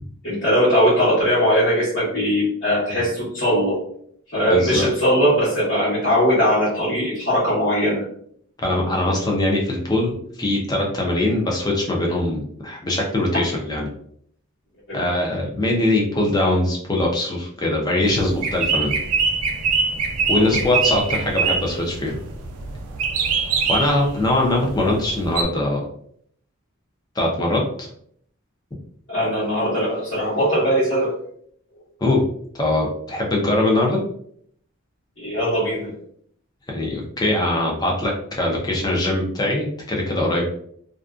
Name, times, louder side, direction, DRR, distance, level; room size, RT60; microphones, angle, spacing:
voice 1, 0.2-3.8 4.3-8.0 13.3-13.4 14.9-15.0 20.4-20.6 29.1-31.1 35.2-35.9, equal, 50° left, -13 dB, 1.0 m, -20 dB
voice 2, 4.5-4.9 8.6-13.9 14.9-18.9 20.3-22.2 23.7-25.9 27.2-27.9 32.0-32.2 32.6-34.0 36.7-40.4, left 1 dB, 20° left, -1 dB, 0.5 m, -22 dB
sound 1, 18.0-25.4, right 5 dB, 90° right, 0.4 m, -24 dB
2.5 x 2.2 x 2.4 m, 0.65 s
head